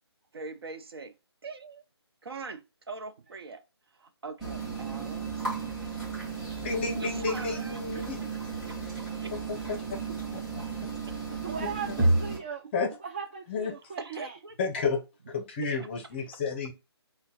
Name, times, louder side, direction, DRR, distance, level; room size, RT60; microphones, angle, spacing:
voice 1, 0.3-1.1 1.4-1.8 2.2-3.6 3.9-5.5 6.9-8.3 8.7-9.6 10.1-10.2 11.1-11.2 14.0-14.5, right 4 dB, 60° right, 0.8 m, -42 dB
sound 1, 4.4-12.4, right 3 dB, ahead, 1.6 m, -32 dB
voice 2, 6.6-8.2 9.5-10.0 11.6-11.7 12.7-12.9 13.5-13.7 14.6-15.0 15.3-16.7, left 4 dB, 25° left, 0.7 m, -31 dB
voice 3, 11.2-12.6 13.0-14.4, right 6 dB, 25° right, 0.3 m, -38 dB
3.5 x 2.2 x 4.1 m
figure-of-eight pair, 160°, 14 cm